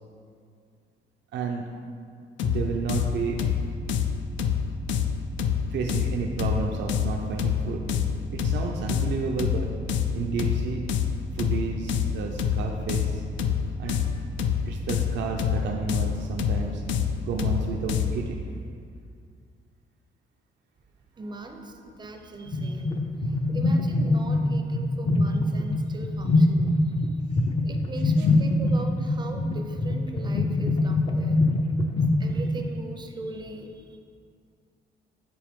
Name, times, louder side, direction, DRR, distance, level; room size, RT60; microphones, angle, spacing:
voice 1, 1.3-1.6 2.4-3.4 5.7-7.8 8.3-9.7 10.1-10.9 11.3-13.2 13.8-14.1 14.7-16.8 17.2-18.4, right 5 dB, 70° right, 1 dB, 0.5 m, -31 dB
sound 1, 2.4-18.3, left 7 dB, 75° left, 0.4 m, -27 dB
voice 2, 21.2-26.8 27.6-31.5 32.2-34.0, right 2 dB, 25° right, 4 dB, 0.5 m, -40 dB
sound 2, 22.5-32.6, left 2 dB, 25° left, 0.5 m, -24 dB
7.6 x 4.2 x 3.6 m, 2.3 s
cardioid pair, 125°, 19 cm